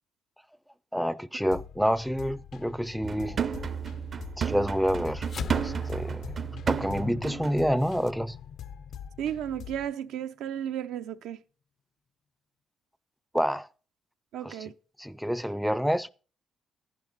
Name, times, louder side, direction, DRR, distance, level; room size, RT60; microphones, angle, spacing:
voice 1, 0.9-3.4 4.4-6.4 6.7-8.4 13.3-13.7 14.4-14.6 15.0-16.1, equal, ahead, 0.5 m, -28 dB
sound 1, 1.5-9.9, left 9 dB, 75° left, 0.8 m, -45 dB
sound 2, 3.0-7.6 8.0-8.1, right 7 dB, 45° right, 0.6 m, -32 dB
sound 3, 5.2-9.9, left 6 dB, 50° left, 0.5 m, -41 dB
voice 2, 9.2-11.4 14.3-14.7, right 10 dB, 85° right, 0.7 m, -34 dB
11.0 x 10.5 x 4.0 m
cardioid pair, 95°, 0 cm